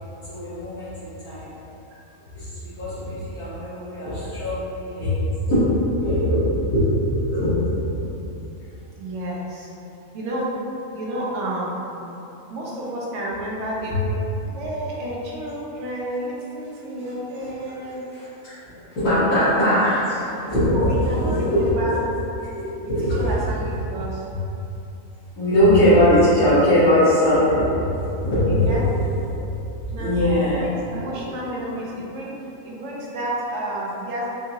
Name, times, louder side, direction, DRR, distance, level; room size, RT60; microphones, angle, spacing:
voice 1, 0.3-1.5 2.3-5.2 5.5-6.4 6.7-7.5 7.9-8.0 18.1-18.2 18.7-20.8 21.0-22.0 22.5-23.2 25.4-28.9 29.8-30.7, equal, 80° left, -18 dB, 1.8 m, -20 dB
voice 2, 9.0-9.7 10.1-10.6 10.9-11.9 12.5-18.1 20.7-22.0 22.8-24.3 28.4-28.8 29.9-34.3, right 1 dB, 60° right, -5 dB, 0.9 m, -31 dB
4.6 x 2.7 x 2.7 m, 2.9 s
omnidirectional pair, 1.5 m